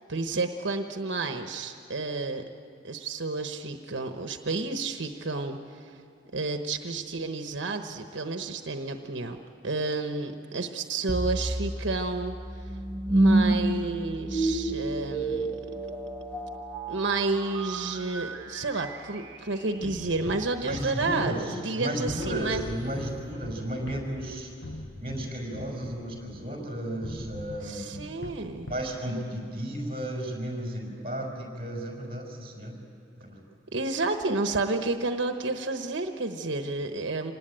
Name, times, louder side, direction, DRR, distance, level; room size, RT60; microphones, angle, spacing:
voice 1, 0.1-2.4 2.8-6.0 6.3-9.4 9.6-12.7 13.1-15.6 16.9-22.6 27.6-28.7 33.7-37.3, right 3 dB, 85° right, 6 dB, 1.1 m, -31 dB
sound 1, 11.1-20.2, right 2 dB, 10° right, 1.6 m, -29 dB
sound 2, 19.8-21.8 22.1-26.5 27.0-29.0, left 1 dB, 85° left, 1.4 m, -42 dB
voice 2, 20.6-24.5 25.0-28.2 28.7-32.8 33.2-33.4, right 1 dB, 30° right, 0 dB, 5.4 m, -34 dB
26.0 x 19.0 x 9.0 m, 2.6 s
head